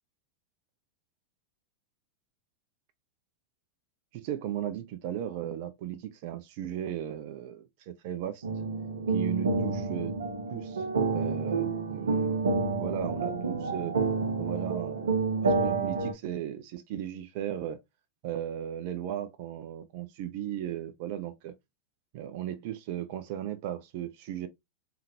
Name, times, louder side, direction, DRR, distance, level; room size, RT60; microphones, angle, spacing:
voice 1, 4.1-8.5 9.1-10.2 10.5-10.9 11.1-13.9 14.4-17.8 18.2-21.5 22.1-24.5, right 11 dB, 55° right, 0.5 m, -36 dB
sound 1, 8.4-16.1, right 4 dB, 80° right, 0.9 m, -29 dB
3.7 x 3.4 x 2.8 m
figure-of-eight pair, 95°, 0 cm